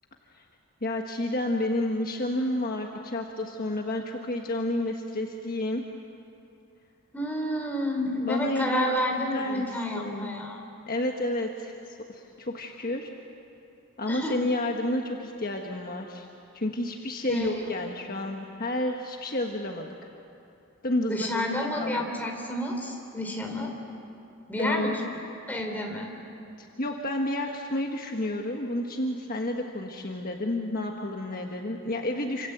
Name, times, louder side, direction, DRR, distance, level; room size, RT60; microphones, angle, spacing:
voice 1, 0.8-5.8 8.3-9.7 9.9-10.4 10.9-13.1 14.0-16.3 16.5-19.9 20.8-21.4 21.8-22.0 24.6-25.0 26.6-32.5, left 1 dB, 40° left, 2 dB, 1.4 m, -30 dB
voice 2, 7.1-10.6 14.1-14.4 17.3-17.6 21.1-23.7 24.5-25.0 25.5-26.1, left 1 dB, 10° left, 1 dB, 3.6 m, -30 dB
28.0 x 26.5 x 8.0 m, 2.7 s
head